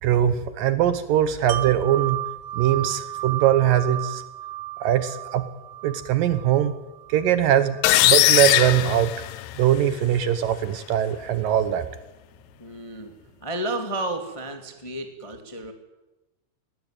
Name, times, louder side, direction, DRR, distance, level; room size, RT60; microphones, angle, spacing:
voice 1, 0.0-2.2 2.5-4.2 4.8-5.5 5.8-6.7 7.1-9.1 9.6-11.9, right 11 dB, 70° right, 12 dB, 2.4 m, -21 dB
Wind chime, 1.5-7.3 7.7-7.8, right 15 dB, 85° right, 1.5 m, -33 dB
sound 1, 7.8-9.8, left 15 dB, 85° left, 3.0 m, -19 dB
voice 2, 12.6-13.1 13.4-15.7, right 1 dB, 15° left, 5 dB, 1.1 m, -32 dB
20.0 x 20.0 x 9.1 m, 1.0 s
omnidirectional pair, 4.6 m